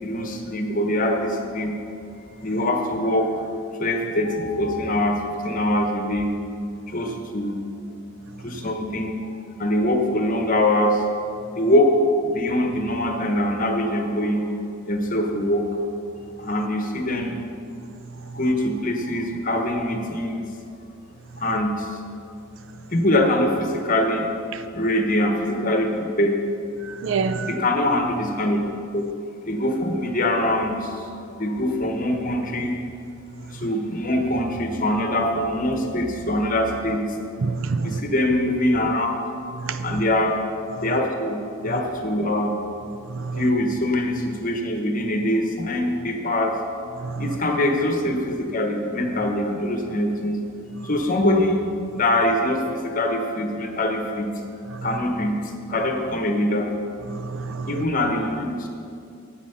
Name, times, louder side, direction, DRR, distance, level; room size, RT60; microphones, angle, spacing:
voice 1, 0.0-1.7 2.4-3.5 3.8-6.3 6.9-7.6 8.4-9.2 9.6-11.0 11.5-14.4 14.9-15.7 16.4-17.3 18.3-20.5 21.4-22.0 22.9-24.3 24.7-26.4 27.4-28.6 28.9-29.1 29.5-32.7 33.5-37.0 37.8-39.2 39.8-40.4 40.8-41.4 41.6-42.6 43.3-46.6 47.2-50.4 50.8-51.6 51.9-54.3 54.8-55.3 55.7-56.7 57.7-58.7, left 1 dB, 40° left, 1.1 m, -23 dB
voice 2, 26.9-27.5 37.4-38.0 39.6-39.8 43.1-43.4 47.0-47.2 57.2-57.7, right 4 dB, 60° right, 0.4 m, -27 dB
10.0 x 7.7 x 5.6 m
head